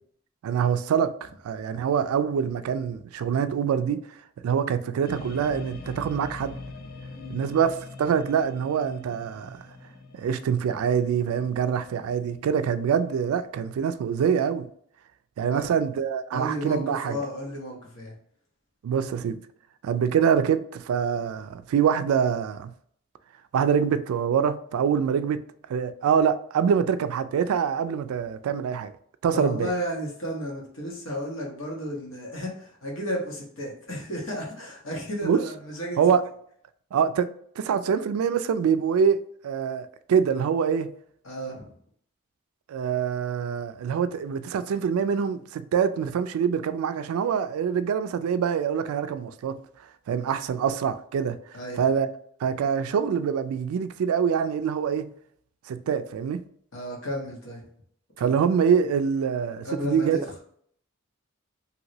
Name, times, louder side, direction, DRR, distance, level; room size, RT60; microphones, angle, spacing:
voice 1, 0.4-4.2 4.4-6.5 7.3-9.7 10.1-14.7 15.4-17.2 18.8-19.4 19.8-22.7 23.5-25.4 25.7-28.9 29.2-29.7 35.2-35.4 36.0-36.2 36.9-40.9 42.7-49.6 50.1-52.1 52.4-55.1 55.7-56.4 58.2-60.2, right 7 dB, 90° right, 0.3 m, -25 dB
sound 1, 5.0-13.4, left 3 dB, 45° left, 0.4 m, -43 dB
voice 2, 16.3-18.1 29.3-36.0 41.2-41.7 51.5-51.8 56.7-57.6 58.2-58.3 59.6-60.2, equal, 70° left, 1.1 m, -33 dB
3.0 x 2.8 x 2.7 m
head